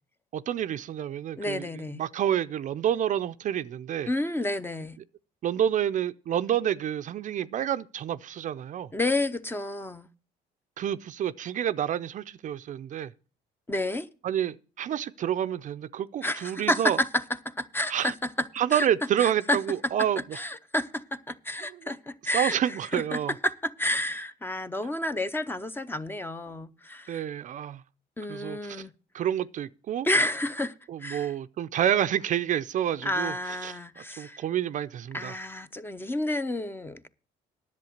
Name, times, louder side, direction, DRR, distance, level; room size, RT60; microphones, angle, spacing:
voice 1, 0.3-1.7 2.0-4.1 5.4-8.9 10.8-13.1 14.2-17.0 17.9-18.1 18.6-20.4 21.7-21.9 22.3-23.3 27.1-27.8 28.3-28.9 29.1-30.1 30.9-33.3 33.6-35.4, right 10 dB, 50° right, 0.5 m, -29 dB
voice 2, 1.4-2.0 4.1-5.0 8.9-10.1 13.7-14.1 16.2-18.1 18.7-18.9 19.2-19.6 20.3-27.2 28.2-28.9 30.0-30.7 31.0-31.3 33.0-34.4 35.1-37.1, left 1 dB, 15° left, 0.6 m, -30 dB
10.5 x 7.6 x 6.5 m
cardioid pair, 110°, 17 cm